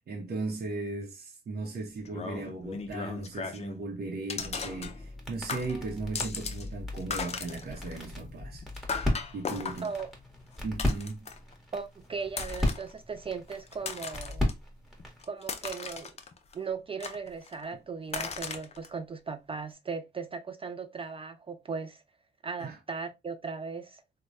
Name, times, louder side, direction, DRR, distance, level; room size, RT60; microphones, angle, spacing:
voice 1, 0.1-8.7 9.3-9.9 10.6-11.3 22.6-22.8, right 3 dB, 60° right, 0.8 m, -37 dB
sound 1, 2.0-3.8 4.3-5.2 5.5-6.7 6.9-11.5 12.3-12.9 13.5-14.5 15.0-16.5 17.0-17.7 18.1-18.9, left 5 dB, 35° left, 0.5 m, -38 dB
sound 2, 4.4-15.3, left 1 dB, ahead, 1.1 m, -36 dB
voice 2, 11.7-14.5 15.2-16.1 16.5-22.0 22.4-24.0, right 5 dB, 30° right, 0.4 m, -37 dB
3.2 x 2.2 x 2.5 m
cardioid pair, 85°, 18 cm